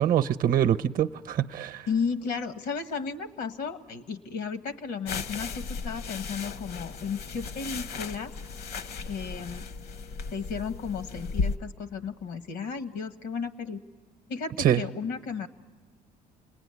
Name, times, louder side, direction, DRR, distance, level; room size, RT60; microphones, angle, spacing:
voice 1, 0.0-1.8 14.6-14.8, right 10 dB, 55° right, 0.7 m, -24 dB
voice 2, 1.9-8.3 9.0-9.6 10.3-13.8 14.3-15.5, left 5 dB, 85° left, 1.3 m, -34 dB
sound 1, 5.1-11.6, left 4 dB, 65° left, 0.8 m, -35 dB
27.5 x 19.5 x 9.6 m
cardioid pair, 110°, 17 cm